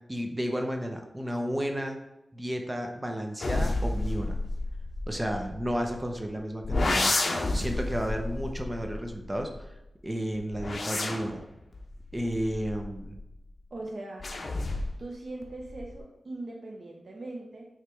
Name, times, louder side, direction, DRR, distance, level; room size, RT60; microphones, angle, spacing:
voice 1, 0.1-2.0 2.3-4.4 5.1-9.7 10.0-11.4 12.1-13.1, equal, 15° right, 4 dB, 0.8 m, -32 dB
sound 1, 3.4-6.1 6.6-9.8 10.3-13.4 14.2-15.1 15.4-16.0, left 2 dB, 55° left, 0.9 m, -31 dB
voice 2, 13.7-14.3 15.0-17.7, right 2 dB, 60° right, -1 dB, 0.8 m, -40 dB
6.6 x 3.3 x 4.6 m, 0.90 s
wide cardioid pair, 80°, 0 cm